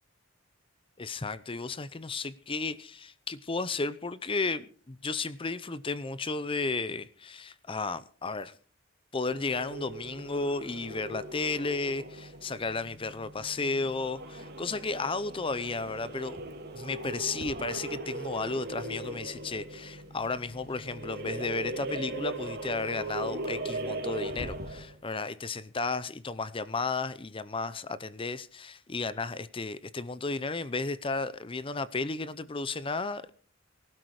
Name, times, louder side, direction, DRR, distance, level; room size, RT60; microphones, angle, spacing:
voice 1, 1.0-8.6 9.1-16.4 16.7-33.3, left 3 dB, 25° left, 0.6 m, -33 dB
sound 1, 9.3-25.0, right 2 dB, 55° right, 2.8 m, -39 dB
19.0 x 12.0 x 4.8 m
head